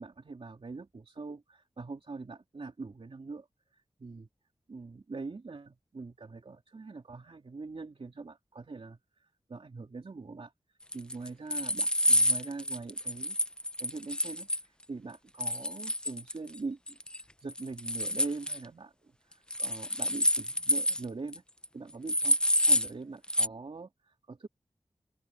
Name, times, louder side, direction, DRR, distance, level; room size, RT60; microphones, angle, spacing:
voice 1, 0.0-3.5 3.7-4.3 4.7-10.5 10.9-13.4 13.8-17.0 17.4-21.4 21.7-22.4 22.6-24.5, right 3 dB, 60° right, 3.0 m, -43 dB
sound 1, 10.9-14.6 15.4-16.6 16.9-17.2 17.5-18.6 19.5-21.1 21.3-21.4 21.6-21.7 22.1-22.9 23.3-23.5, left 1 dB, 10° left, 0.7 m, -28 dB
open air
wide cardioid pair, 90°, 11 cm